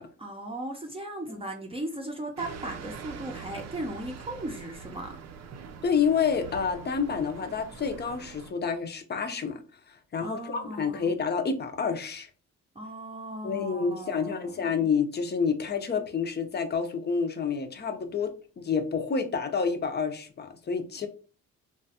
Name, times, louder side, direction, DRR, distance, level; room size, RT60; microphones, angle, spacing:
voice 1, 0.2-5.2 10.2-11.1 12.8-14.7, right 1 dB, 20° right, 0.6 m, -37 dB
sound 1, 2.4-8.5, right 6 dB, 60° right, 0.6 m, -43 dB
voice 2, 5.8-9.6 9.9-12.3 13.4-18.3 18.6-21.1, left 6 dB, 35° left, 0.6 m, -29 dB
3.1 x 2.2 x 2.8 m
cardioid pair, 90°, 30 cm